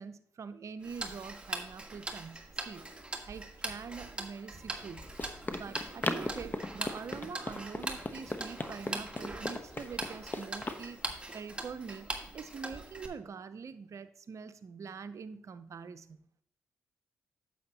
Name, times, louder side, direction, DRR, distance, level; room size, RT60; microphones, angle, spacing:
voice 1, 0.0-2.9 3.3-5.1 5.5-11.1 11.3-12.1 12.3-16.3, right 5 dB, 55° right, 11 dB, 0.7 m, -44 dB
Tick-tock, 0.8-13.1, right 2 dB, 15° right, 1.7 m, -41 dB
Run, 4.6-10.8, left 2 dB, 30° left, 1.0 m, -39 dB
9.4 x 7.7 x 2.9 m, 0.67 s
supercardioid pair, 45°, 6 cm